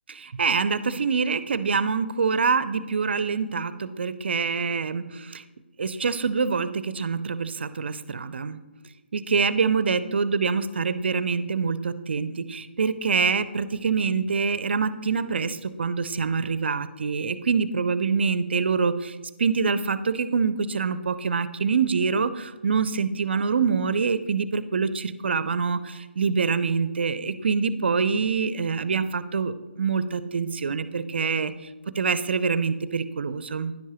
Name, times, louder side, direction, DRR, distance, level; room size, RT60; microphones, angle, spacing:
voice 1, 0.1-5.4 5.8-8.6 9.1-31.5 32.0-33.7, right 5 dB, 65° right, 15 dB, 0.5 m, -25 dB
10.5 x 7.2 x 3.0 m, 1.2 s
figure-of-eight pair, 150°, 6 cm